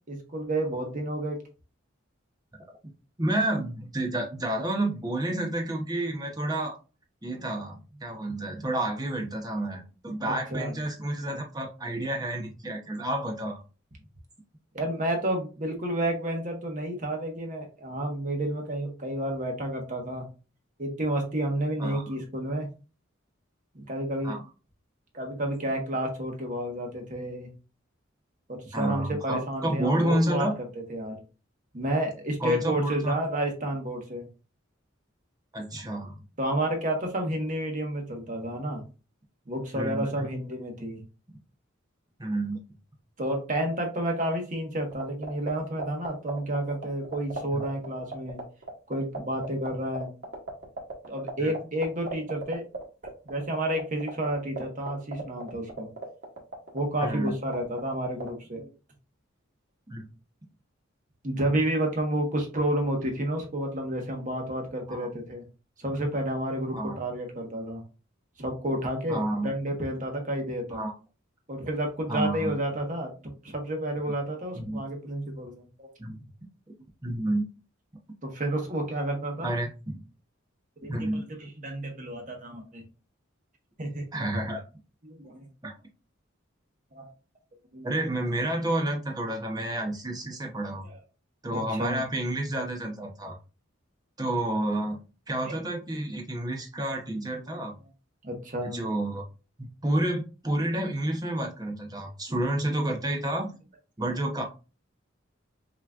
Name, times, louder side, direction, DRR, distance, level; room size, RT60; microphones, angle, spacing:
voice 1, 0.1-1.4 10.2-10.7 14.7-20.2 20.8-22.7 23.7-24.3 25.1-27.5 28.5-30.5 30.9-31.2 31.7-34.3 36.4-38.8 39.5-41.0 43.2-48.4 48.9-50.1 51.1-52.7 53.2-55.9 56.7-58.7 61.2-65.4 65.8-67.8 68.4-70.8 71.5-75.9 78.2-79.5 80.8-82.8 83.8-84.1 85.0-85.5 86.9-87.1 87.7-87.9 90.8-91.0 91.5-92.0 97.5-97.6 98.2-98.8, right 1 dB, 40° right, 2 dB, 1.3 m, -30 dB
voice 2, 3.2-6.8 7.2-13.6 21.8-22.1 24.2-24.4 28.7-30.5 32.4-33.1 35.5-36.1 39.7-40.3 42.2-42.6 47.5-47.7 51.4-51.5 57.0-57.3 59.9-60.1 64.9-65.1 66.7-67.0 69.1-69.5 70.7-70.9 72.1-72.6 74.5-74.8 76.0-76.2 77.0-77.4 79.4-79.7 80.9-81.2 84.1-84.6 85.6-85.7 87.8-90.9 91.4-93.4 94.2-95.0 95.3-97.7 98.6-99.3 99.6-103.5 104.0-104.4, right 1 dB, 20° right, 1 dB, 1.0 m, -30 dB
sound 1, 44.9-58.3, right 3 dB, 60° right, 1.6 m, -35 dB
6.0 x 3.1 x 2.5 m, 0.33 s
head